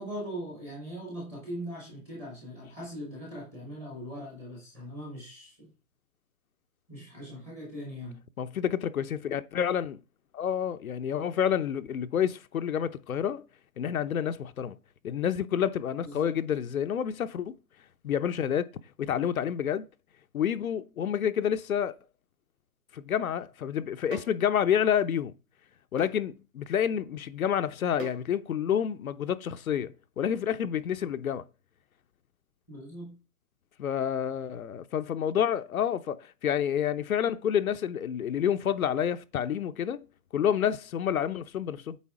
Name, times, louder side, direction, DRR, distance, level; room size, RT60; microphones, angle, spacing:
voice 1, 0.0-5.7 6.9-8.2 16.0-16.4 32.7-33.2, equal, 5° right, 0.7 m, -40 dB
voice 2, 8.4-10.0 10.3-13.4 13.8-14.8 15.0-17.6 18.0-18.6 19.0-19.9 20.3-22.0 22.9-25.3 25.9-31.5 33.8-40.0 40.3-42.0, left 9 dB, 65° left, 0.7 m, -29 dB
sound 1, 24.1-24.4 26.0-26.2 28.0-28.3, right 6 dB, 60° right, 1.8 m, -41 dB
8.4 x 3.5 x 4.8 m
hypercardioid pair, 170°, 45 cm